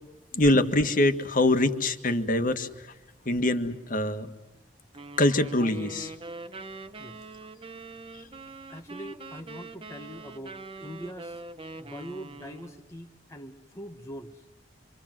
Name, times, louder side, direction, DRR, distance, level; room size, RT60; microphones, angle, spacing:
voice 1, 0.3-2.9 3.3-4.3 5.2-6.1, left 1 dB, 50° left, 8 dB, 1.8 m, -24 dB
sound 1, 4.9-12.9, right 3 dB, 30° right, 1.2 m, -43 dB
voice 2, 8.7-11.4 11.8-14.4, equal, 15° left, 3 dB, 1.2 m, -43 dB
26.5 x 26.0 x 7.7 m, 1.0 s
head